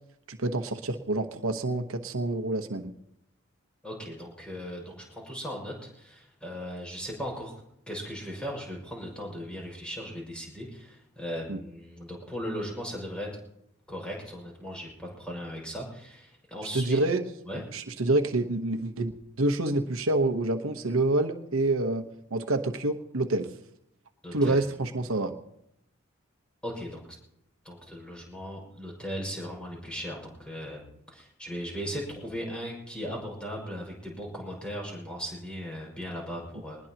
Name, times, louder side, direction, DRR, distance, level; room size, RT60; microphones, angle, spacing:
voice 1, 0.3-2.9 11.5-11.6 16.7-17.3 17.7-19.1 19.4-22.0 22.3-23.5 24.3-25.3, right 2 dB, 85° right, 6 dB, 1.2 m, -27 dB
voice 2, 3.8-7.6 7.9-13.3 13.9-17.0 17.5-17.6 24.2-24.6 26.6-27.0 27.6-30.8 31.1-36.8, equal, 5° left, -2 dB, 6.1 m, -37 dB
21.5 x 20.5 x 3.0 m, 0.78 s
head